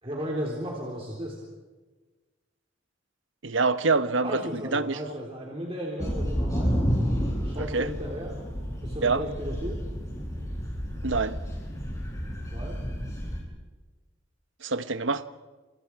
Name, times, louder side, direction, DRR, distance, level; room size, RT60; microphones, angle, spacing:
voice 1, 0.0-1.4 4.2-6.8 7.4-8.4 8.8-9.8 12.5-12.8, equal, 30° right, 3.7 m, -35 dB
voice 2, 3.4-5.0 7.6-7.9 9.0-9.2 11.0-11.4 14.6-15.2, right 3 dB, 75° right, 1.1 m, -26 dB
sound 1, 6.0-13.4, equal, 15° left, 7.9 m, -30 dB
29.5 x 28.0 x 4.8 m
head